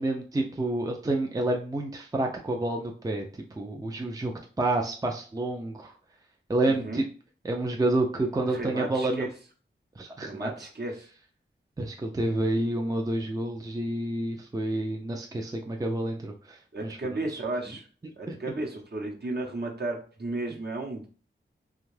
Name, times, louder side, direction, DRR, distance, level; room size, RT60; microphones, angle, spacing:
voice 1, 0.0-3.2 3.6-4.3 4.6-5.9 6.5-7.0 7.4-9.3 10.0-10.7 11.8-17.4 18.3-18.6, right 2 dB, 20° right, 2 dB, 0.4 m, -29 dB
voice 2, 6.7-7.0 8.5-9.3 10.2-11.1 16.7-17.9 18.2-21.1, right 2 dB, 55° right, 0 dB, 0.9 m, -34 dB
2.6 x 2.3 x 3.1 m, 0.40 s
cardioid pair, 50°, 21 cm